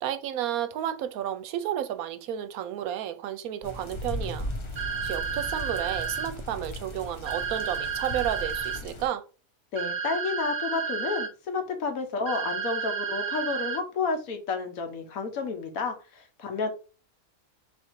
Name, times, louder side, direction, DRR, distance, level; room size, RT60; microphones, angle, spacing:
voice 1, 0.0-4.5 5.0-9.2, right 11 dB, 85° right, 1.0 m, -32 dB
sound 1, 3.6-9.1, left 1 dB, 40° left, 0.4 m, -37 dB
sound 2, 4.8-6.3 7.3-8.8 9.8-11.3 12.3-13.8, right 6 dB, 55° right, 1.1 m, -31 dB
voice 2, 9.7-16.7, left 4 dB, 80° left, 1.3 m, -31 dB
3.9 x 2.6 x 4.4 m
omnidirectional pair, 1.5 m